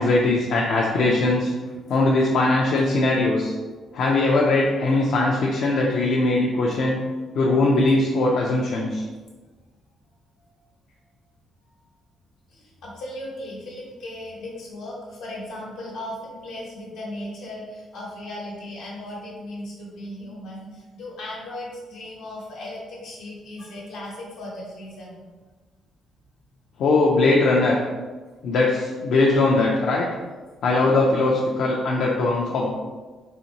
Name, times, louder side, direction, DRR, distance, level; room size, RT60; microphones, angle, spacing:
voice 1, 0.0-1.5 1.9-3.5 3.9-7.0 7.3-9.0 26.8-27.8 28.4-30.1 30.6-32.7, left 2 dB, 70° left, -3 dB, 0.4 m, -20 dB
voice 2, 12.5-25.2, left 1 dB, 90° left, -4 dB, 1.1 m, -37 dB
4.0 x 2.7 x 2.9 m, 1.3 s
cardioid pair, 90°, 0 cm